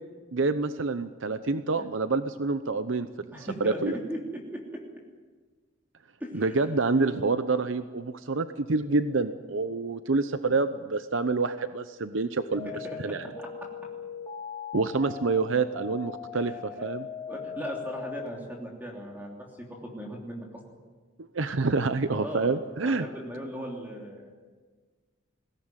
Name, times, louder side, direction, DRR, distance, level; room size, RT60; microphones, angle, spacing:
voice 1, 0.3-4.0 6.3-12.7 13.0-13.3 14.7-17.1 21.2-23.1, right 3 dB, 80° right, 11 dB, 0.8 m, -27 dB
voice 2, 3.3-4.6 6.2-7.2 12.6-13.5 16.3-16.6 17.3-20.5 22.1-22.5 22.8-24.4, equal, 10° right, -1 dB, 3.1 m, -38 dB
sound 1, 12.4-18.3, left 6 dB, 20° left, 2.6 m, -40 dB
21.5 x 17.0 x 9.1 m, 1.4 s
head